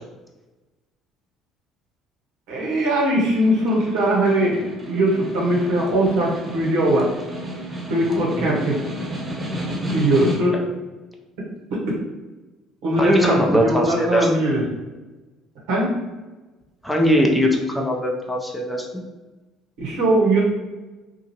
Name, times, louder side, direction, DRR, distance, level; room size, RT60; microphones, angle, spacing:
voice 1, 2.5-7.1 7.9-8.8 9.9-10.6 12.8-14.6 15.7-15.9 19.8-20.4, right 1 dB, 75° right, -4 dB, 0.9 m, -20 dB
Snare drum, 3.3-10.7, equal, 25° right, 1.0 m, -32 dB
voice 2, 12.9-14.3 16.8-18.9, equal, 5° left, 1 dB, 0.6 m, -20 dB
2.7 x 2.4 x 2.9 m, 1.2 s
hypercardioid pair, 70°, 0 cm